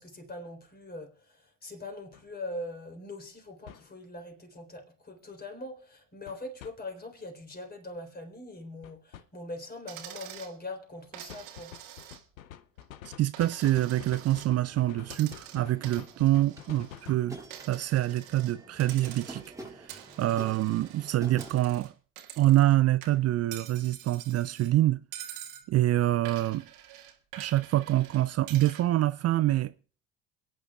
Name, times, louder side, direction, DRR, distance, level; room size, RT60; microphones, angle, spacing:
voice 1, 0.0-11.8, left 2 dB, 25° left, 3.9 m, -42 dB
sound 1, 2.1-2.2 3.7-3.9 6.3-6.7 8.8-9.3 11.3-17.3, left 11 dB, 85° left, 0.7 m, -47 dB
Coin (dropping), 9.9-10.5 11.1-12.4 12.8-14.5 15.0-17.1 17.5-18.5 18.8-19.5 19.9-22.7 23.0-24.7 25.1-25.7 26.2-28.9, right 11 dB, 65° right, 1.8 m, -46 dB
voice 2, 13.2-17.4 17.7-19.4 19.8-21.9 22.4-25.0 25.7-26.7 27.4-29.7, right 14 dB, 40° right, 0.5 m, -26 dB
sound 2, 13.8-21.8, right 2 dB, 10° right, 2.6 m, -48 dB
28.0 x 9.5 x 2.4 m
hypercardioid pair, 60°, 40 cm